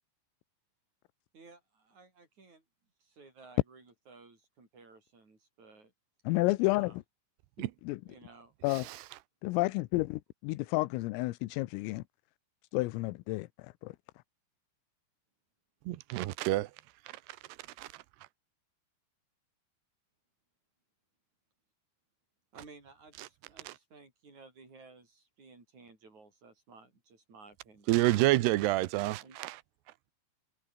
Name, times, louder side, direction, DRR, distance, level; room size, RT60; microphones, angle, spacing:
voice 1, 1.3-2.6 3.0-5.9 6.7-7.0 8.1-9.0 22.5-28.4 29.2-29.4, right 4 dB, 35° right, 8.4 m, -56 dB
voice 2, 6.3-6.9 7.8-8.0 8.6-8.8 9.4-12.0 12.7-13.9, left 21 dB, 85° left, 3.5 m, -31 dB
voice 3, 15.9-16.7 17.8-17.9 23.7-23.8 27.9-29.6, right 17 dB, 80° right, 2.4 m, -28 dB
omnidirectional pair, 5.9 m